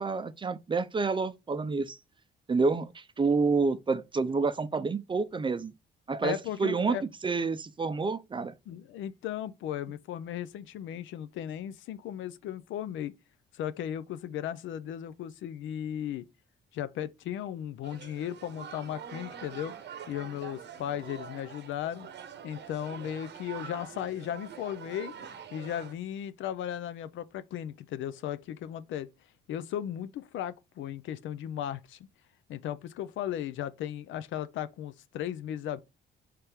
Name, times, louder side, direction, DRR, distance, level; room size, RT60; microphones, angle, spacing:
voice 1, 0.0-2.0 2.5-5.7 6.1-7.0 7.2-8.5, right 4 dB, 25° right, 0.5 m, -28 dB
voice 2, 6.2-7.0 8.7-13.1 13.5-16.3 16.7-19.7 20.1-22.1 22.4-29.1 29.5-32.1 32.5-35.8, left 10 dB, 75° left, 0.5 m, -36 dB
sound 1, 17.8-25.9, right 7 dB, 60° right, 0.8 m, -45 dB
4.3 x 3.3 x 3.4 m
cardioid pair, 90°, 20 cm